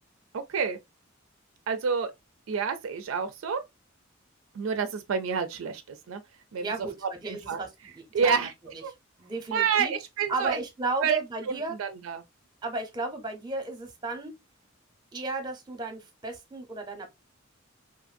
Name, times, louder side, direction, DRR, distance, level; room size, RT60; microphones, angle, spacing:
voice 1, 0.3-0.8 1.7-2.1 2.5-3.6 4.5-6.2 6.5-6.7 7.3-7.6 8.1-8.5 8.8-8.9 9.5-10.6 11.0-11.2 11.5-12.2, right 6 dB, 80° right, 0.4 m, -28 dB
voice 2, 6.6-8.5 8.7-8.8 9.2-9.9 10.3-11.8 12.6-14.3 15.1-17.1, right 3 dB, 20° right, 0.7 m, -34 dB
2.7 x 2.5 x 2.4 m
head